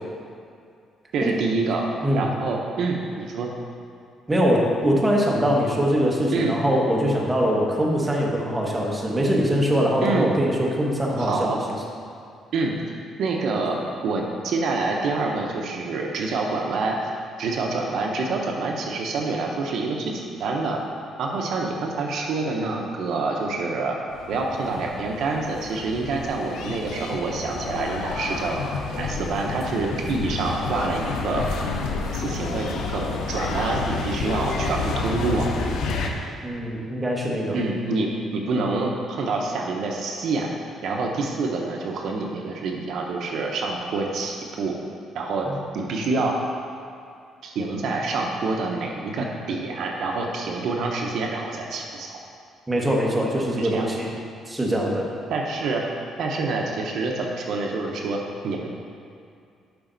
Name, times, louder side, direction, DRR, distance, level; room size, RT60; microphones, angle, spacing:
voice 1, 1.1-1.9 2.2-3.5 6.3-6.6 10.0-10.3 11.2-11.6 12.5-12.8 13.2-17.0 17.4-20.8 21.2-24.0 24.3-28.6 29.0-31.4 32.1-35.5 37.5-40.5 40.8-44.7 45.1-45.5 45.7-46.4 47.4-52.2 53.6-53.9 55.3-55.8 56.2-58.7, right 3 dB, 60° right, 0 dB, 0.8 m, -27 dB
voice 2, 4.3-11.6 36.4-37.6 45.5-45.6 52.7-54.1 54.5-55.1, equal, 10° right, -3 dB, 1.0 m, -22 dB
sound 1, 24.1-36.1, left 4 dB, 85° left, 0.8 m, -30 dB
11.5 x 5.0 x 3.9 m, 2.4 s
cardioid pair, 165°, 0 cm